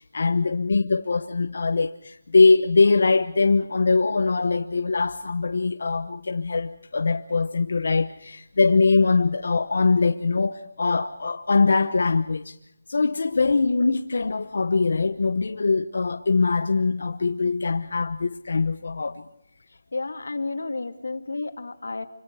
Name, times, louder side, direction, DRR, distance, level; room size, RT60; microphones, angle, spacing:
voice 1, 0.0-12.6 12.9-19.2, left 4 dB, 55° left, 0.9 m, -22 dB
voice 2, 19.9-22.1, left 3 dB, 85° left, 2.6 m, -31 dB
26.0 x 26.0 x 4.8 m
hypercardioid pair, 180°, 0 cm